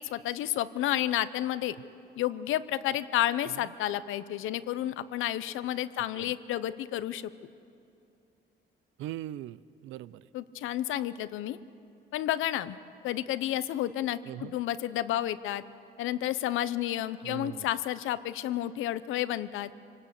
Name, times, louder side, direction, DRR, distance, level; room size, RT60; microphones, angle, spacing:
voice 1, 0.0-1.8 2.2-7.3 10.3-11.6 12.1-12.8 13.0-15.6 16.0-19.7, left 13 dB, 90° left, 14 dB, 0.8 m, -31 dB
voice 2, 6.0-6.3 9.0-10.3 14.2-14.6 17.2-17.7, right 13 dB, 90° right, 18 dB, 0.5 m, -41 dB
25.5 x 19.0 x 8.2 m, 2.6 s
cardioid pair, 90°, 20 cm